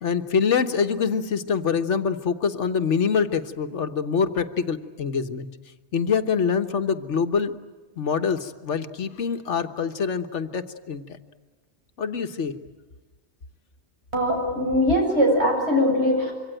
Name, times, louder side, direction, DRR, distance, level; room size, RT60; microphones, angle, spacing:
voice 1, 0.0-5.5 5.9-7.5 8.0-11.2 12.0-12.6, left 6 dB, 85° left, 8 dB, 1.5 m, -25 dB
voice 2, 14.1-16.3, equal, 70° right, 1 dB, 7.8 m, -21 dB
26.0 x 24.5 x 9.1 m, 1.3 s
omnidirectional pair, 1.2 m